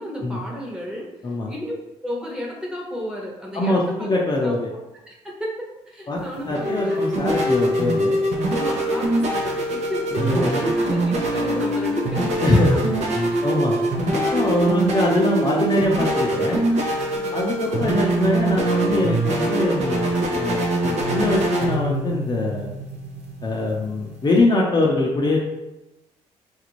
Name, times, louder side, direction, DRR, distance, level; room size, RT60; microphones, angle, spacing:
voice 1, 0.0-1.1 1.5-1.7 2.0-4.1 4.4-4.5 5.1-7.1 8.5-12.8 13.3-13.7 17.1-17.7, equal, 5° right, -3 dB, 1.0 m, -33 dB
voice 2, 3.5-4.7 6.1-6.2 6.5-8.2 10.1-10.7 12.4-12.8 13.2-13.8 14.1-16.6 17.3-20.1 20.4-22.7 23.4-25.4, left 1 dB, 35° left, -2 dB, 0.6 m, -22 dB
sound 1, 6.2-24.4, right 1 dB, 65° right, 0.8 m, -23 dB
3.8 x 2.5 x 3.0 m, 0.96 s
cardioid pair, 90°, 12 cm